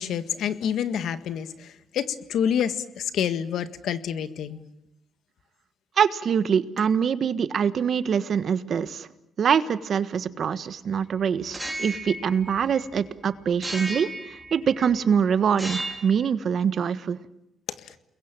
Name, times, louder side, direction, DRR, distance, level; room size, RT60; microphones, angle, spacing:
voice 1, 0.0-4.6 17.7-18.0, left 8 dB, 75° left, 1.7 m, -28 dB
voice 2, 6.0-9.1 9.4-17.2, right 7 dB, 55° right, 1.4 m, -24 dB
Shovel hitting metal swing frame, 11.5-13.1 13.6-15.0 15.5-16.2, right 1 dB, 10° right, 4.0 m, -35 dB
29.5 x 21.5 x 9.0 m
cardioid pair, 90°, 0 cm